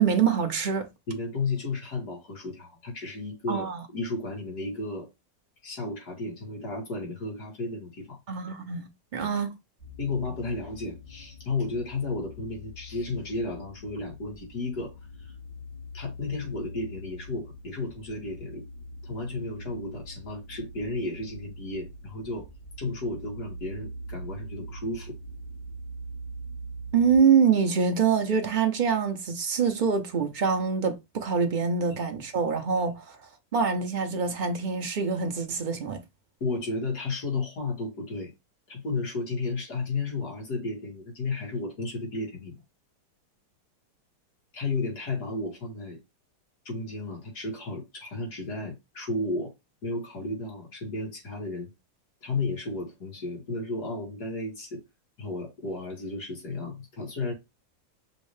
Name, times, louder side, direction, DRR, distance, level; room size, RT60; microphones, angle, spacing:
voice 1, 0.0-0.9 3.5-3.8 8.3-9.5 26.9-33.2 33.5-36.0, right 6 dB, 70° right, 0.4 m, -25 dB
voice 2, 1.1-5.1 5.6-8.2 10.0-14.9 15.2-15.3 15.9-18.6 19.0-22.5 22.8-25.2 36.4-38.3 38.7-42.6 44.5-46.0 46.7-49.5 49.8-51.7 52.2-54.8 55.2-57.3, left 3 dB, 65° left, 2.5 m, -33 dB
sound 1, 9.8-27.2, equal, 30° left, 1.5 m, -43 dB
6.1 x 2.7 x 3.2 m
omnidirectional pair, 1.9 m